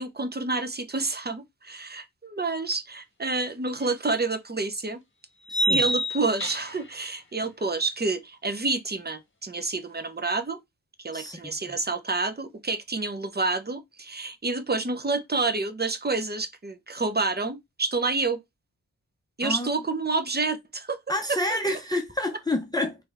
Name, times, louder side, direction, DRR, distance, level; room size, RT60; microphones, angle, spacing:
voice 1, 0.0-5.0 5.7-10.6 11.0-18.4 19.4-21.0, right 3 dB, 25° right, 0.9 m, -28 dB
sound 1, 3.8-3.9 5.5-6.9, right 1 dB, 30° left, 1.3 m, -26 dB
voice 2, 5.5-5.8 11.1-11.8 19.4-19.7 21.1-23.0, left 1 dB, 10° left, 0.8 m, -29 dB
4.3 x 3.4 x 3.5 m
cardioid pair, 55°, 37 cm